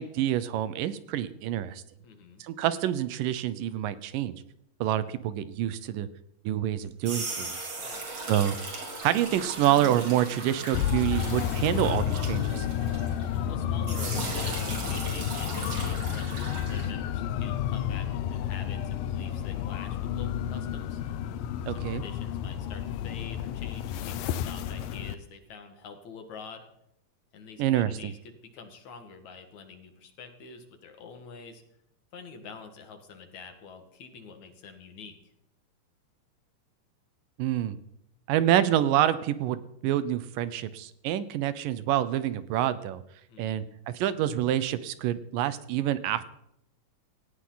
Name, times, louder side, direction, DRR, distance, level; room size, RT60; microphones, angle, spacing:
voice 1, 0.0-1.8 2.4-4.4 4.8-6.1 6.5-7.6 8.3-8.6 9.0-12.7 21.7-22.0 27.6-27.9 37.4-37.8 38.3-43.0 43.4-46.2, right 12 dB, 80° right, 14 dB, 2.5 m, -27 dB
voice 2, 2.0-2.4 7.8-8.1 13.5-21.0 21.7-26.7 27.3-31.6 32.1-35.2 43.3-43.6, left 5 dB, 60° left, 6 dB, 3.0 m, -46 dB
sound 1, 6.8-13.5 13.8-16.9, right 3 dB, 45° right, 4.5 m, -37 dB
sound 2, 10.7-25.2, left 10 dB, 85° left, 2.5 m, -31 dB
18.0 x 16.0 x 3.9 m, 0.77 s
omnidirectional pair, 3.9 m